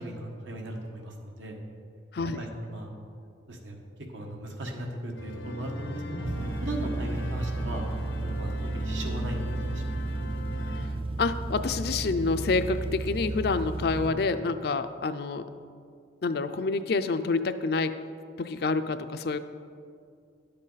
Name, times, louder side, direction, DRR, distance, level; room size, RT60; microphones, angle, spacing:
voice 1, 0.0-1.6 2.4-2.9 3.5-3.8 4.1-7.9 8.2-10.1, right 1 dB, 85° right, 1 dB, 1.4 m, -37 dB
sound 1, 5.2-10.9, left 2 dB, 85° left, 0.8 m, -40 dB
sound 2, 6.2-14.1, right 2 dB, 30° right, 0.3 m, -33 dB
voice 2, 11.2-15.5 16.2-17.9 18.4-19.4, left 3 dB, 55° left, 10 dB, 0.4 m, -28 dB
11.5 x 7.6 x 4.0 m, 2.3 s
head